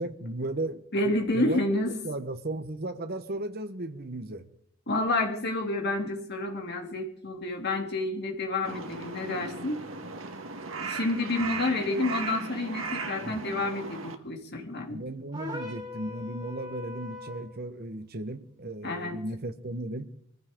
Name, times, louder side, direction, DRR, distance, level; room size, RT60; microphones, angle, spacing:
voice 1, 0.0-0.8 1.3-1.6 2.0-4.5 13.2-13.4 14.9-20.1, right 2 dB, 45° right, 1.2 m, -35 dB
voice 2, 0.9-1.9 4.9-9.8 10.9-15.0 18.8-19.2, left 2 dB, 50° left, 2.8 m, -29 dB
Crow, 8.6-14.2, right 4 dB, 70° right, 1.5 m, -37 dB
sound 1, 15.3-17.5, left 2 dB, 20° right, 3.6 m, -40 dB
23.0 x 15.0 x 3.8 m
head